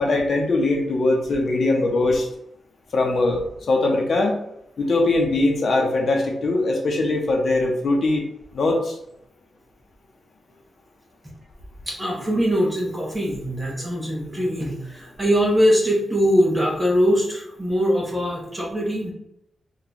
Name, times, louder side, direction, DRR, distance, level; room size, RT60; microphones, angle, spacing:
voice 1, 0.0-2.3 2.9-4.4 4.8-8.2 8.5-9.0, left 2 dB, 55° left, 1 dB, 0.6 m, -21 dB
voice 2, 11.9-19.1, equal, 10° right, -3 dB, 1.0 m, -22 dB
2.8 x 2.3 x 3.9 m, 0.76 s
wide cardioid pair, 115°, 0 cm